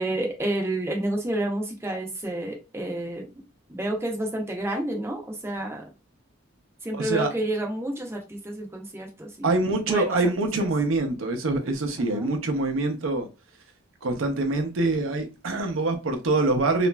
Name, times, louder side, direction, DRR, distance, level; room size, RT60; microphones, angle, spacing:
voice 1, 0.0-3.3 3.7-5.9 6.8-9.5 9.9-10.3 10.6-10.7 12.0-12.3, right 1 dB, 15° right, 0.5 m, -30 dB
voice 2, 6.9-7.3 9.4-13.3 14.0-16.9, right 2 dB, 90° right, 0.6 m, -25 dB
2.9 x 2.4 x 2.2 m
head